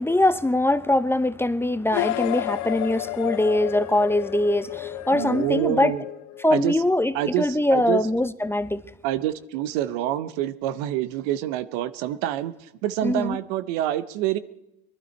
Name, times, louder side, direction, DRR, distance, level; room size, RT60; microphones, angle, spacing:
voice 1, 0.0-5.9 6.4-8.8 13.0-13.4, left 1 dB, 10° left, 0.7 m, -22 dB
sound 1, 1.9-6.7, left 15 dB, 70° left, 0.7 m, -31 dB
voice 2, 5.1-6.0 6.5-6.8 7.1-8.0 9.0-14.4, right 13 dB, 80° right, 0.8 m, -27 dB
20.5 x 12.5 x 4.5 m
supercardioid pair, 75°, 30 cm